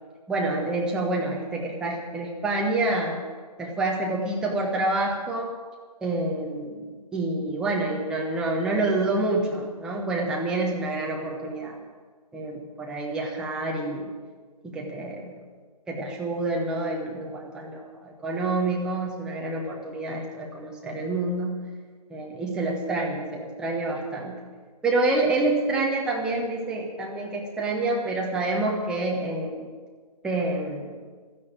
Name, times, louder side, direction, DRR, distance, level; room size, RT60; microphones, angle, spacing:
voice 1, 0.3-3.2 3.6-5.5 6.0-11.8 12.3-14.1 14.6-15.3 15.9-21.6 22.1-24.4 24.8-29.7 30.2-30.9, right 2 dB, 5° right, -2 dB, 1.0 m, -27 dB
13.5 x 9.6 x 8.7 m, 1.5 s
figure-of-eight pair, 145°, 21 cm